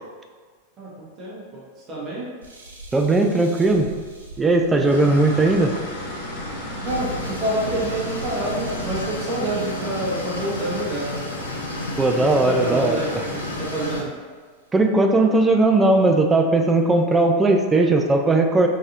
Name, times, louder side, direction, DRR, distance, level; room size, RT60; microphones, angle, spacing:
voice 1, 0.8-2.3 6.8-11.2 12.2-13.1 13.6-14.1, right 1 dB, 30° right, -6 dB, 1.0 m, -28 dB
sound 1, 2.4-11.6 12.3-12.7 13.4-13.5 14.0-14.7, right 2 dB, 75° right, 0.5 m, -41 dB
voice 2, 2.9-3.9 4.4-5.8 12.0-13.2 14.7-18.7, right 2 dB, 15° right, 3 dB, 0.3 m, -18 dB
sound 2, 4.9-14.0, left 1 dB, 55° left, 0.8 m, -34 dB
sound 3, 6.8-14.0, left 1 dB, 75° left, 0.4 m, -34 dB
3.9 x 2.6 x 2.5 m, 1.5 s
figure-of-eight pair, 90°, 0 cm